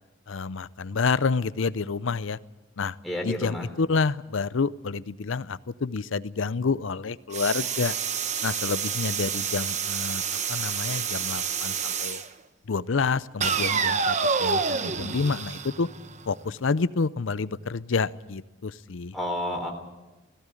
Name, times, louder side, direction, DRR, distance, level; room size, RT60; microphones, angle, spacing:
voice 1, 0.3-2.4 2.8-3.0 3.2-8.0 8.4-10.2 10.5-12.2 12.7-15.9 16.3-19.1, left 4 dB, 70° left, 17 dB, 0.6 m, -28 dB
voice 2, 3.0-3.7 19.1-19.7, left 1 dB, ahead, 3 dB, 3.4 m, -30 dB
sound 1, 7.3-12.3 13.4-16.3, right 6 dB, 35° right, 0.9 m, -28 dB
18.0 x 16.0 x 9.8 m, 1.1 s
head